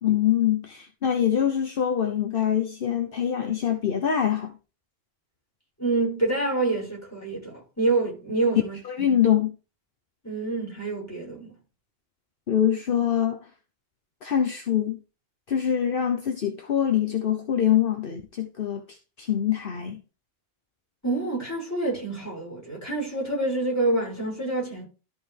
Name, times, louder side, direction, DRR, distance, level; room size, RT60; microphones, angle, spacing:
voice 1, 0.0-4.5 8.9-9.5 12.5-13.4 14.2-15.0 15.5-20.0, left 9 dB, 60° left, 1.1 m, -24 dB
voice 2, 5.8-9.2 10.2-11.5 21.0-24.8, right 2 dB, 15° left, 6.3 m, -27 dB
13.0 x 5.5 x 3.4 m
omnidirectional pair, 1.0 m